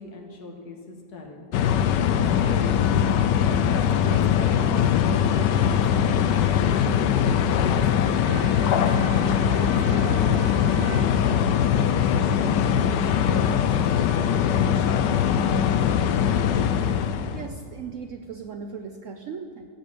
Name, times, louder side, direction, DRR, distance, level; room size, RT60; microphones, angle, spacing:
voice 1, 0.0-1.5 2.4-2.9 3.5-8.8 9.4-11.8 12.1-12.8 13.3-13.5 13.9-16.7, left 3 dB, 65° left, 1 dB, 2.1 m, -39 dB
sound 1, 1.5-17.5, left 8 dB, 80° left, 1.3 m, -21 dB
Bowed string instrument, 8.2-11.9, right 7 dB, 85° right, 1.6 m, -42 dB
voice 2, 17.3-19.7, right 6 dB, 65° right, 5 dB, 0.8 m, -37 dB
16.5 x 5.5 x 7.5 m, 2.4 s
omnidirectional pair, 1.9 m